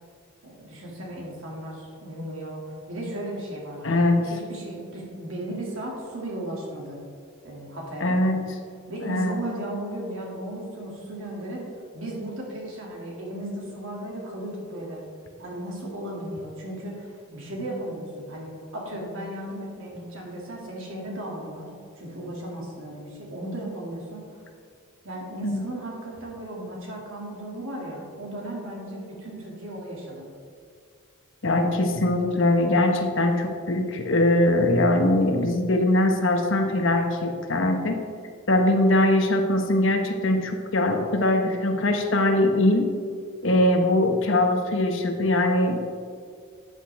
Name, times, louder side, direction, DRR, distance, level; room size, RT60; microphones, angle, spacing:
voice 1, 0.4-2.6 2.9-7.0 7.4-8.2 8.9-11.7 11.9-15.0 15.4-24.2 25.0-30.3, right 1 dB, 65° right, -2 dB, 2.5 m, -35 dB
voice 2, 3.8-4.2 8.0-8.4 9.0-9.4 25.4-25.6 31.4-38.0 38.5-42.9 43.4-45.8, left 1 dB, 60° left, 4 dB, 1.1 m, -22 dB
12.5 x 8.3 x 3.5 m, 2.2 s
head